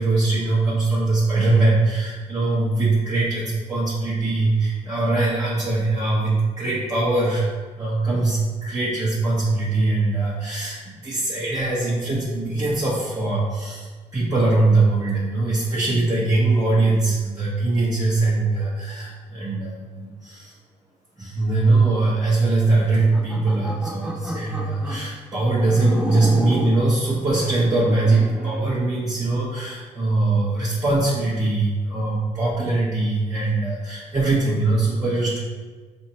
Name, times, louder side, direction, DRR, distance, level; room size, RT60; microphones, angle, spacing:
voice 1, 0.0-7.5 7.8-20.5 21.2-35.4, right 2 dB, 25° right, -9 dB, 1.2 m, -21 dB
sound 1, 23.0-25.1 25.7-26.8 27.4-28.8, right 1 dB, 5° right, 0.4 m, -31 dB
4.2 x 2.7 x 2.9 m, 1.4 s
cardioid pair, 90°, 13 cm